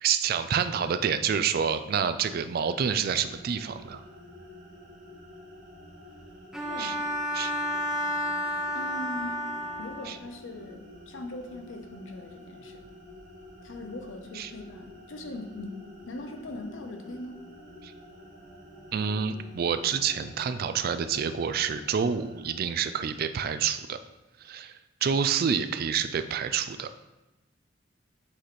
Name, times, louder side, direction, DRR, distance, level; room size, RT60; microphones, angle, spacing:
voice 1, 0.0-4.0 6.8-6.9 7.3-7.5 10.1-10.2 14.4-14.5 17.8-17.9 18.9-24.0 24.4-24.7 25.0-27.0, right 7 dB, 50° right, 10 dB, 0.3 m, -28 dB
sound 1, 2.6-22.5, left 1 dB, 70° right, 2.0 m, -49 dB
Bowed string instrument, 6.5-10.2, left 1 dB, 5° right, 0.6 m, -31 dB
voice 2, 6.6-7.0 8.7-9.4 9.8-12.8 13.6-17.4, left 2 dB, 80° left, 4 dB, 0.7 m, -40 dB
7.7 x 3.1 x 4.2 m, 1.1 s
head